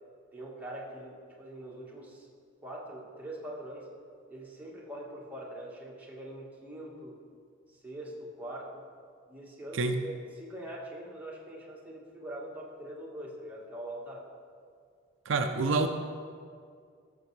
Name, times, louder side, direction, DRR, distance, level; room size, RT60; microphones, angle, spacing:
voice 1, 0.3-2.3 2.6-3.9 4.3-7.2 7.7-8.9 9.3-14.3, right 1 dB, 10° right, -4 dB, 1.5 m, -43 dB
voice 2, 15.3-15.9, right 3 dB, 75° right, 6 dB, 0.5 m, -27 dB
15.0 x 6.9 x 3.2 m, 2.2 s
head